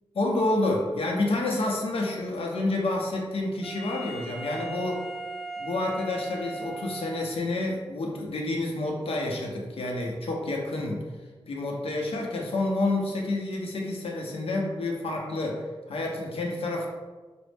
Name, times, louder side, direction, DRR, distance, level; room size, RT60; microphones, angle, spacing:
voice 1, 0.2-5.0 5.6-11.0 11.5-15.6 15.9-16.9, left 2 dB, 85° left, -1 dB, 0.7 m, -29 dB
Wind instrument woodwind instrument, 3.6-7.6, right 2 dB, ahead, 0.6 m, -38 dB
5.0 x 2.0 x 3.3 m, 1.3 s
wide cardioid pair, 115°, 10 cm